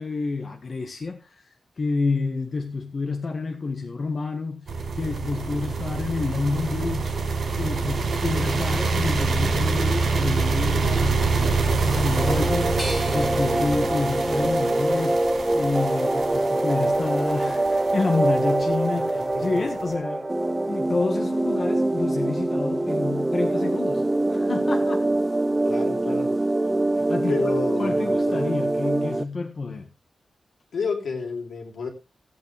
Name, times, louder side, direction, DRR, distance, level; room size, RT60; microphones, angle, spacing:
voice 1, 0.0-4.7 4.9-7.1 7.6-15.2 15.5-20.3 20.7-25.1 26.9-27.5 27.8-29.9, left 3 dB, 45° left, 1.7 m, -29 dB
sound 1, 4.7-19.8, right 4 dB, 65° right, 4.3 m, -26 dB
sound 2, 12.2-29.2, right 2 dB, 15° right, 0.6 m, -24 dB
sound 3, 12.8-15.7 16.2-17.1, equal, 5° left, 4.0 m, -41 dB
voice 2, 18.7-19.7 25.6-26.4 27.3-28.5 30.7-31.9, left 4 dB, 80° left, 3.4 m, -31 dB
16.5 x 8.6 x 3.4 m
wide cardioid pair, 155°, 0 cm